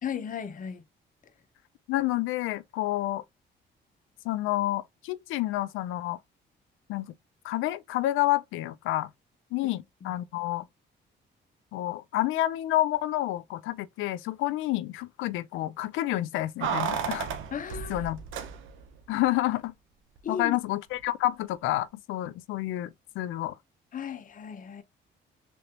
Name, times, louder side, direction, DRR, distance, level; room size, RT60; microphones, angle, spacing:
voice 1, 0.0-0.8 9.6-9.7 17.5-18.1 20.2-20.6 23.9-24.8, left 7 dB, 40° left, 0.7 m, -35 dB
voice 2, 1.9-3.2 4.2-6.2 6.9-7.1 7.4-9.1 9.5-10.7 11.7-17.3 17.9-18.2 19.1-19.7 20.3-23.6, left 15 dB, 90° left, 0.4 m, -29 dB
Keys jangling, 16.6-19.0 19.2-19.3, right 7 dB, 85° right, 0.7 m, -33 dB
3.4 x 3.1 x 2.8 m
cardioid pair, 90°, 20 cm